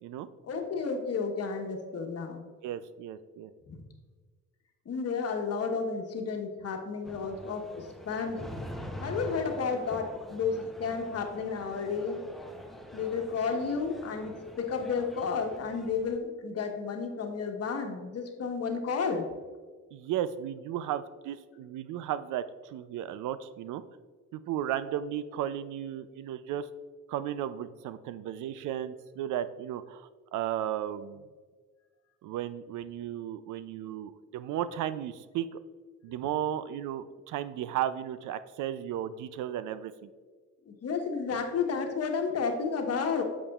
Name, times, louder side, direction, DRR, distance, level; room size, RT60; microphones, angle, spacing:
voice 1, 0.4-2.4 3.7-3.8 4.8-8.5 9.0-12.2 12.9-19.3 36.1-36.2 40.7-43.2, left 5 dB, 55° left, 4 dB, 1.2 m, -32 dB
voice 2, 2.6-3.5 19.9-23.8 24.3-26.7 27.1-31.2 32.2-35.6 36.0-40.1, right 11 dB, 80° right, 14 dB, 0.5 m, -34 dB
sound 1, 7.0-16.2, equal, ahead, 0.7 m, -44 dB
8.4 x 7.3 x 2.4 m, 1.5 s
cardioid pair, 90°, 30 cm